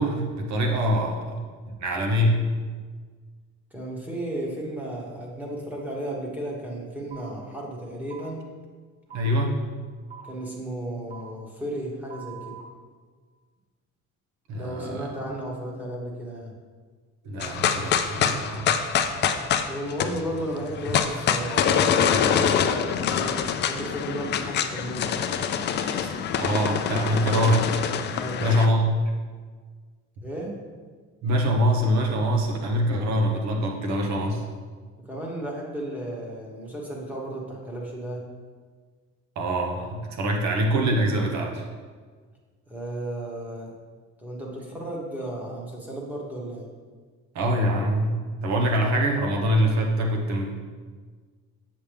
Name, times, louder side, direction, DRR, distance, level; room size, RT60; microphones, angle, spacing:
voice 1, 0.0-1.4 1.8-2.4 9.1-9.6 14.5-15.1 17.2-18.7 25.8-27.7 28.4-29.0 31.2-34.4 39.3-41.7 47.3-50.6, equal, 70° right, 1 dB, 1.3 m, -24 dB
voice 2, 3.7-8.4 10.2-12.6 14.5-16.5 19.6-23.4 23.7-25.2 28.1-28.4 30.2-30.5 35.0-38.2 42.7-43.7 44.2-46.7, right 1 dB, 5° right, -2 dB, 1.2 m, -34 dB
sound 1, 7.1-7.2 8.1-8.2 9.1-9.2 10.1-10.2 11.1-11.2 12.1-12.6, right 9 dB, 30° right, 1.5 m, -42 dB
sound 2, 17.4-28.7, left 8 dB, 40° left, 0.4 m, -25 dB
7.6 x 7.1 x 3.4 m, 1.5 s
cardioid pair, 175°, 29 cm